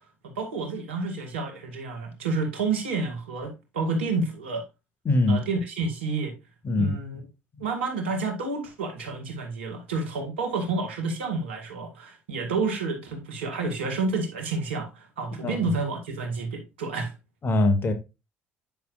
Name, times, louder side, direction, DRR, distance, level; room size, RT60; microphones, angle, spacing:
voice 1, 0.2-4.6 5.3-6.3 6.8-7.2 7.6-17.1, right 3 dB, 90° right, 2.1 m, -29 dB
voice 2, 5.1-5.4 6.6-7.0 15.4-15.7 17.4-17.9, left 2 dB, 35° left, 2.2 m, -22 dB
10.0 x 6.1 x 2.5 m
hypercardioid pair, 60°, 6 cm